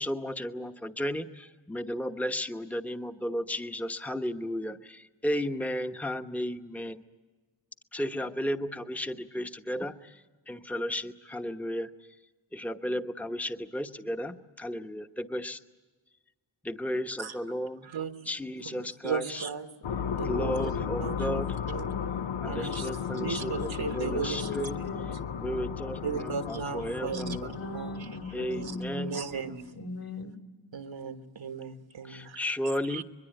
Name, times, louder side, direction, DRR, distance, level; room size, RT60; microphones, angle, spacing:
voice 1, 0.0-7.0 7.9-11.9 12.5-15.6 16.6-17.9 18.3-19.4 20.2-21.6 22.4-24.8 25.4-27.6 28.3-29.1 32.0-33.0, equal, 5° left, 7 dB, 1.0 m, -34 dB
voice 2, 18.6-19.7 20.2-20.7 21.0-21.4 21.7-21.9 22.5-24.9 26.0-28.1 28.5-29.6 30.7-32.4 32.9-33.0, right 6 dB, 75° right, 8 dB, 1.6 m, -36 dB
sound 1, 19.8-29.6, left 7 dB, 65° left, 0.8 m, -35 dB
voice 3, 20.2-20.6 21.0-22.2 23.1-25.2 27.0-29.2 29.7-30.4, left 3 dB, 50° left, 6 dB, 2.5 m, -40 dB
24.5 x 22.0 x 9.1 m, 1.3 s
cardioid pair, 45°, 46 cm